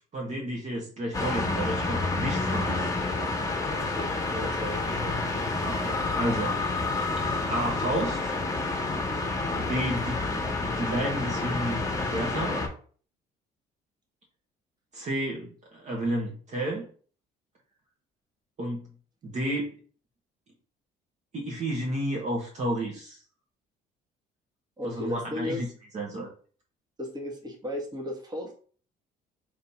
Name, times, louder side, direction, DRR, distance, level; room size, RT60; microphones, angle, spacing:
voice 1, 0.1-3.0 5.6-6.6 7.5-8.3 9.5-12.6 14.9-16.9 18.6-18.8 19.2-19.7 21.3-23.2 24.8-25.7 25.9-26.3, right 1 dB, 45° right, -1 dB, 1.4 m, -31 dB
sound 1, 1.1-12.7, left 3 dB, 20° left, 1.4 m, -29 dB
voice 2, 3.7-5.2 24.8-25.6 27.0-28.5, left 1 dB, 25° right, -1 dB, 1.6 m, -35 dB
3.9 x 3.1 x 4.2 m, 0.43 s
cardioid pair, 110°, 17 cm